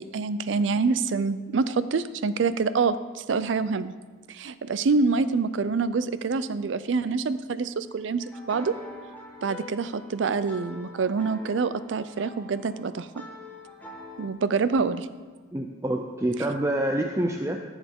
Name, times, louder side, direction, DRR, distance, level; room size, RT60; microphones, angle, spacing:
voice 1, 0.0-3.9 4.3-8.8 9.4-13.1 14.2-15.1, right 4 dB, 75° right, 14 dB, 0.4 m, -26 dB
sound 1, 8.2-14.3, left 2 dB, 10° left, 1.3 m, -44 dB
voice 2, 15.5-17.6, right 1 dB, 15° right, 3 dB, 0.4 m, -27 dB
14.0 x 7.2 x 3.6 m, 1.5 s
head